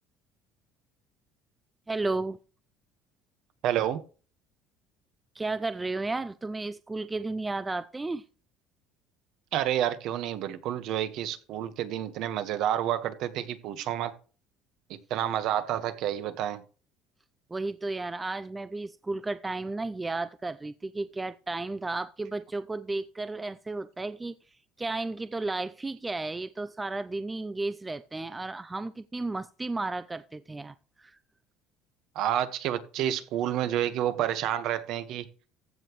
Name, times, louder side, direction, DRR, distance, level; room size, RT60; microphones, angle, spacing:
voice 1, 1.9-2.4 5.4-8.2 17.5-24.4 24.8-31.2, right 3 dB, 10° right, 0.3 m, -33 dB
voice 2, 3.6-4.0 9.5-14.1 14.9-16.6 32.1-35.3, right 11 dB, 55° right, 1.3 m, -29 dB
15.0 x 7.0 x 3.1 m
cardioid pair, 160°, 0 cm